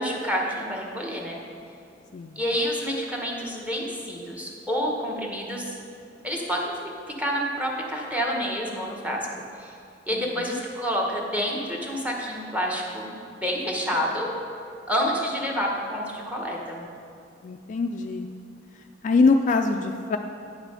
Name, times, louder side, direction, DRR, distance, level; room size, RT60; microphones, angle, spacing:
voice 1, 0.0-1.4 2.4-5.8 6.2-6.9 7.2-9.3 9.6-9.7 10.1-14.3 14.9-16.9, equal, 5° right, -1 dB, 1.1 m, -28 dB
voice 2, 10.1-10.6 17.4-18.3 19.0-20.2, left 3 dB, 40° left, 5 dB, 0.3 m, -23 dB
8.9 x 5.7 x 5.6 m, 2.5 s
head